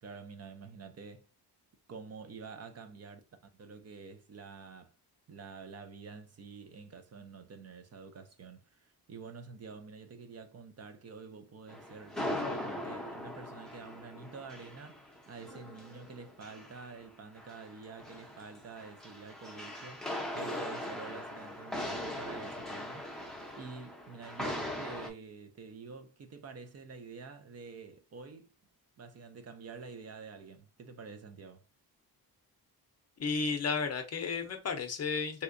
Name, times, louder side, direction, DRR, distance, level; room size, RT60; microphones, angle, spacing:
voice 1, 0.0-1.3 1.9-3.2 3.5-4.9 5.3-23.2 23.6-28.5 29.0-31.7, right 5 dB, 40° right, 0.5 m, -48 dB
sound 1, 11.7-17.1 17.4-25.1, left 1 dB, ahead, 0.6 m, -40 dB
voice 2, 33.2-35.4, left 5 dB, 40° left, 0.6 m, -33 dB
3.3 x 2.8 x 2.5 m
cardioid pair, 115°, 40 cm